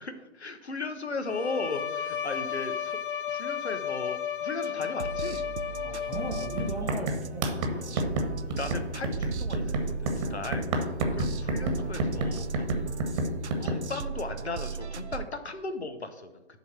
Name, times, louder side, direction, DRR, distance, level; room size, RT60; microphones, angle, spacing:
voice 1, 0.0-3.0 3.3-5.4 6.8-6.9 7.7-7.8 8.4-9.6 9.9-10.7 11.1-12.6 13.1-13.2 13.6-16.3, left 3 dB, 75° left, 8 dB, 1.2 m, -36 dB
Bowed string instrument, 1.2-7.0, left 8 dB, 50° left, 0.6 m, -33 dB
sound 1, 4.6-15.3, right 6 dB, 80° right, 0.7 m, -37 dB
voice 2, 5.8-7.9 11.1-11.7, right 1 dB, ahead, -3 dB, 0.7 m, -39 dB
sound 2, 6.1-6.3 6.6-13.8, right 2 dB, 30° right, 1.3 m, -29 dB
11.0 x 3.9 x 6.0 m, 0.99 s
figure-of-eight pair, 135°, 33 cm